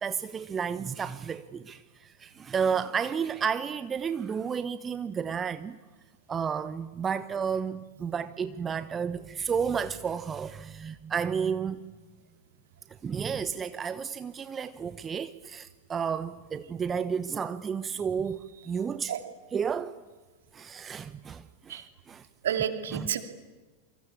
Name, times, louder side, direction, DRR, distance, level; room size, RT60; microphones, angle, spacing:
voice 1, 0.0-5.8 6.3-11.8 13.0-19.1 19.5-20.0 20.5-21.8 22.1-22.2 22.9-23.1, right 6 dB, 20° right, 0.9 m, -32 dB
voice 2, 22.4-23.2, right 9 dB, 60° right, 2.7 m, -30 dB
27.5 x 25.0 x 8.6 m
figure-of-eight pair, 90°, 0 cm